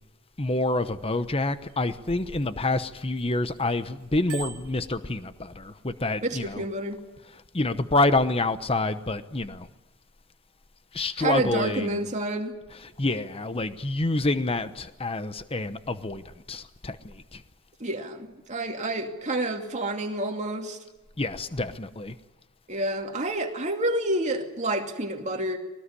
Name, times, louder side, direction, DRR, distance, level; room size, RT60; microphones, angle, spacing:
voice 1, 0.4-6.6 7.5-9.7 10.9-12.0 13.0-16.2 16.5-17.4 21.2-22.1, left 2 dB, 25° left, 0.9 m, -27 dB
Bicycle bell, 1.7-3.6 4.0-5.7 6.3-6.5, right 7 dB, 75° right, 1.9 m, -44 dB
voice 2, 6.2-7.0 11.2-12.5 17.8-20.8 22.7-25.6, right 1 dB, 30° right, 2.5 m, -29 dB
22.5 x 18.5 x 9.9 m
head